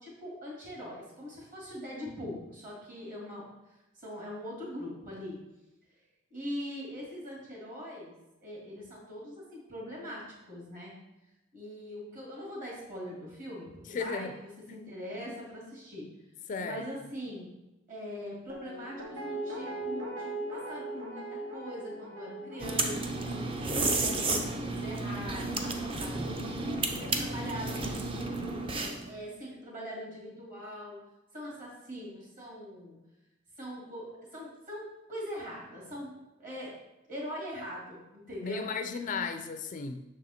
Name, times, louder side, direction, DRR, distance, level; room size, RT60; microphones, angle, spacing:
voice 1, 0.0-3.5 4.0-5.4 6.3-8.1 8.4-10.9 11.5-14.3 14.7-16.1 16.6-17.5 17.9-28.6 29.0-31.0 31.3-33.0 33.6-36.7 37.1-38.7, equal, 45° right, -4 dB, 2.2 m, -42 dB
voice 2, 13.9-14.4 16.5-16.9 38.4-40.0, left 5 dB, 40° left, 8 dB, 0.3 m, -35 dB
Guitar, 18.5-25.5 25.8-25.9, right 1 dB, 80° right, 1.2 m, -41 dB
sound 1, 22.6-29.1, right 2 dB, 30° right, 0.5 m, -32 dB
6.2 x 4.1 x 4.2 m, 0.97 s
head